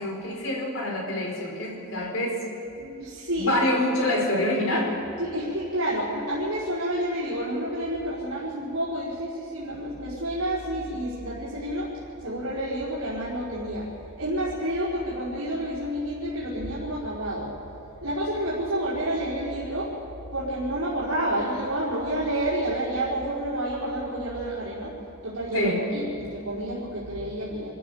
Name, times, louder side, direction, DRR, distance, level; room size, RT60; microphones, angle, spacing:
voice 1, 0.0-2.4 3.4-4.9 25.5-25.8, left 1 dB, 60° left, -1 dB, 4.8 m, -26 dB
voice 2, 2.8-3.6 4.0-4.2 4.7-4.8 5.2-11.9 12.2-13.9 14.1-17.5 18.0-19.9 20.3-24.9 25.2-27.7, right 1 dB, 65° right, -9 dB, 4.9 m, -29 dB
26.0 x 14.5 x 7.2 m, 2.8 s
head